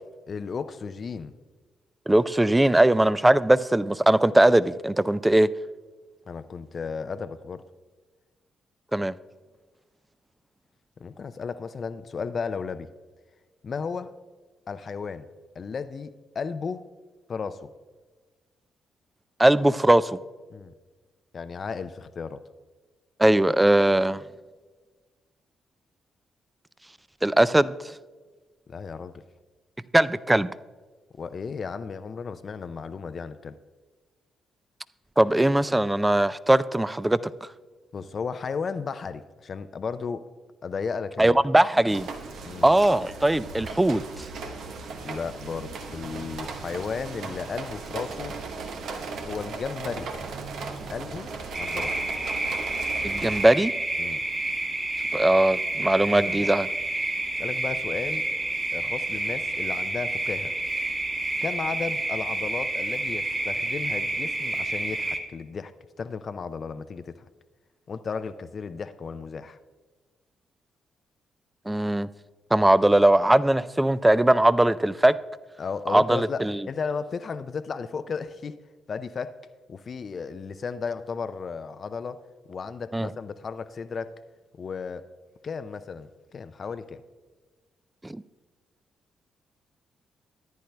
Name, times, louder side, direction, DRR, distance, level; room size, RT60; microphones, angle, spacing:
voice 1, 0.3-1.3 6.3-7.6 11.0-12.9 13.6-14.1 14.7-15.3 15.6-16.9 17.3-17.7 20.5-20.7 21.3-22.4 28.7-29.2 31.2-33.6 37.9-40.2 40.6-41.4 42.4-42.7 45.0-48.4 49.2-50.1 50.9-52.0 54.0-54.2 56.1-56.5 57.4-58.2 58.7-60.5 61.4-65.7 66.0-67.2 67.9-69.6 75.6-78.5 78.9-79.3 79.7-82.2 82.5-84.2 84.6-85.1 85.4-87.0, left 5 dB, 50° left, 12 dB, 0.4 m, -34 dB
voice 2, 2.1-5.5 8.9-9.1 19.4-20.2 23.2-24.2 27.2-27.7 29.9-30.5 35.2-37.5 41.2-42.1 42.6-44.0 53.0-53.7 55.1-56.7 71.7-72.1 72.5-75.1 75.9-76.5 82.9-83.1 88.1-88.2, right 1 dB, 15° right, 16 dB, 0.4 m, -20 dB
sound 1, 41.9-53.5, right 4 dB, 70° right, 0.8 m, -37 dB
sound 2, 51.5-65.2, right 2 dB, 35° right, 1.5 m, -29 dB
14.0 x 10.5 x 2.2 m, 1.3 s
hypercardioid pair, 45°, 0 cm